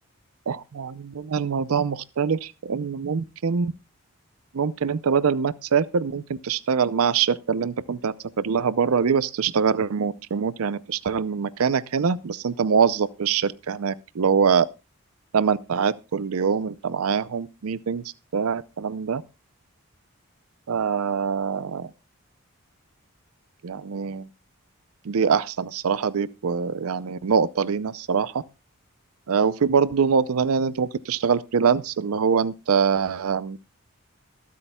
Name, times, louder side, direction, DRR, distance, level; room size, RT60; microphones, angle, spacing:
voice 1, 0.5-3.7 4.5-14.7 15.3-18.0 18.3-19.2 20.7-21.9 23.6-24.3 25.1-28.4 29.3-33.6, right 6 dB, 80° right, 0.5 m, -24 dB
23.0 x 8.4 x 2.2 m
head